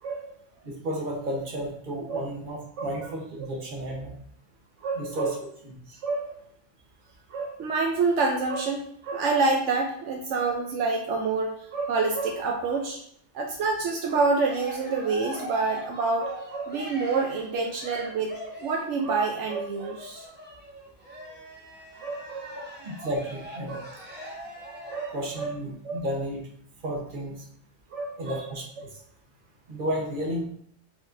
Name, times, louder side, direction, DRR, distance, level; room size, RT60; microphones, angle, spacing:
voice 1, 0.0-0.3 2.1-2.2 2.8-2.9 4.8-5.3 6.0-6.3 7.3-13.0 13.3-20.3 22.0-22.6 23.7-23.9 24.9-25.5 25.8-26.0 27.9-28.4, right 4 dB, 75° right, 1 dB, 0.9 m, -27 dB
voice 2, 0.6-4.1 4.9-5.4 5.6-6.0 22.8-23.8 25.1-26.4 26.8-27.3 28.2-28.9 29.7-30.4, equal, 45° right, -1 dB, 1.2 m, -32 dB
Cheering, 14.0-19.0 19.7-25.3, right 1 dB, 10° right, 0.9 m, -42 dB
4.9 x 4.1 x 2.6 m, 0.65 s
omnidirectional pair, 1.3 m